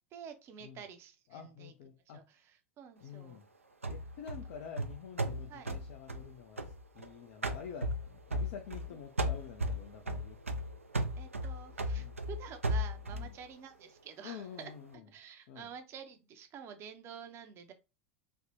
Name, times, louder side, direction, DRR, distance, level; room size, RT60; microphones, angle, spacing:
voice 1, 0.1-1.7 2.1-3.4 5.5-5.7 8.9-9.0 11.2-14.7 15.1-17.7, right 7 dB, 40° right, 0.5 m, -49 dB
voice 2, 1.3-2.2 3.0-3.5 3.9-10.4 12.0-12.2 13.1-13.3 14.2-15.0 15.5-15.7, left 7 dB, 55° left, 0.4 m, -48 dB
sound 1, 3.8-7.1 7.4-8.9 9.2-13.3, equal, 90° right, 0.4 m, -35 dB
3.3 x 2.1 x 2.8 m
figure-of-eight pair, 85°, 7 cm